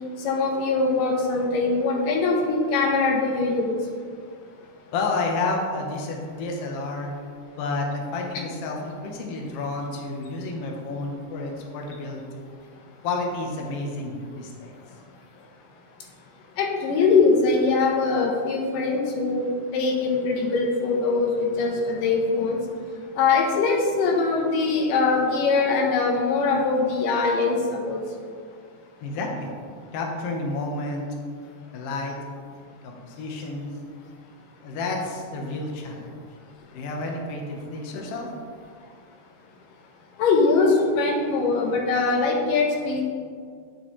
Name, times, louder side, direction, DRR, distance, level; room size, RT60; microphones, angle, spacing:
voice 1, 0.2-3.7 16.6-22.6 23.2-28.0 40.2-43.0, left 4 dB, 85° left, 0 dB, 2.7 m, -22 dB
voice 2, 4.9-7.1 7.6-12.2 13.0-14.7 29.0-29.5 29.9-31.1 31.7-32.2 32.8-33.7 34.6-36.1 36.7-38.3, left 3 dB, 60° left, 1 dB, 1.7 m, -30 dB
9.9 x 6.8 x 3.2 m, 2.1 s
omnidirectional pair, 3.8 m